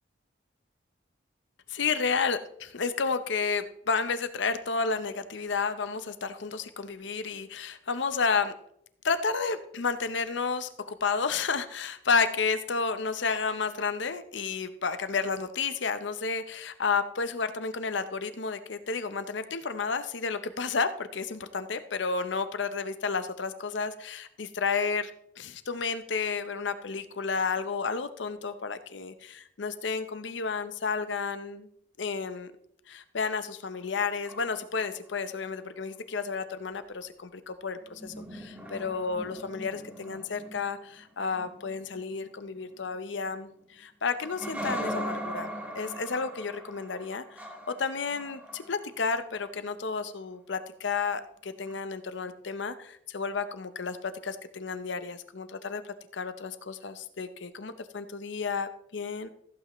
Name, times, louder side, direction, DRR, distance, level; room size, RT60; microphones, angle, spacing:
voice 1, 1.7-8.5 9.0-25.1 25.4-31.7 32.0-32.5 32.9-47.5 47.8-59.3, left 5 dB, 70° left, 11 dB, 0.8 m, -31 dB
sound 1, 33.7-35.0 37.8-43.6 44.2-49.2 51.6-51.8, equal, 10° right, 1.8 m, -40 dB
15.0 x 8.2 x 3.1 m, 0.71 s
head